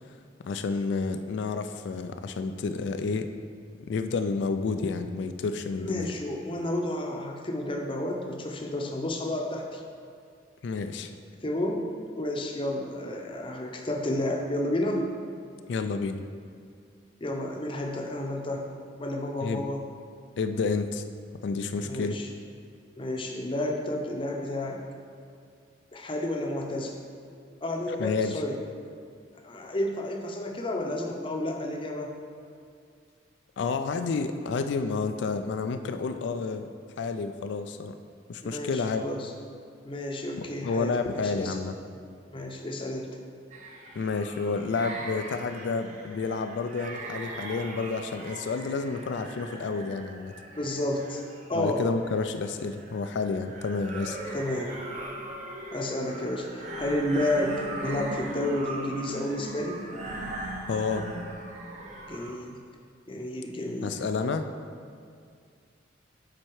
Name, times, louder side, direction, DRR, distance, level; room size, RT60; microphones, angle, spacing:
voice 1, 0.4-3.3 3.9-6.1 10.6-11.1 15.7-16.2 19.4-19.6 20.4-21.0 21.4-22.2 28.0-28.4 33.6-36.7 37.0-38.0 38.3-39.0 40.4-41.7 43.9-50.3 51.5-54.2 60.7-61.1 63.8-64.5, left 4 dB, 70° left, 8 dB, 0.3 m, -30 dB
voice 2, 5.8-9.8 11.4-11.9 12.1-15.1 17.2-18.7 19.0-19.8 21.8-22.3 23.0-24.8 25.9-27.0 27.6-28.5 29.4-32.1 38.4-39.3 39.8-41.6 42.3-43.1 50.5-51.2 51.5-51.8 54.3-54.8 55.7-59.8 62.1-62.6 63.1-63.9, left 1 dB, 25° left, 1 dB, 0.7 m, -31 dB
sound 1, 43.5-62.3, right 1 dB, 40° right, 0.8 m, -40 dB
7.6 x 4.3 x 4.7 m, 2.3 s
head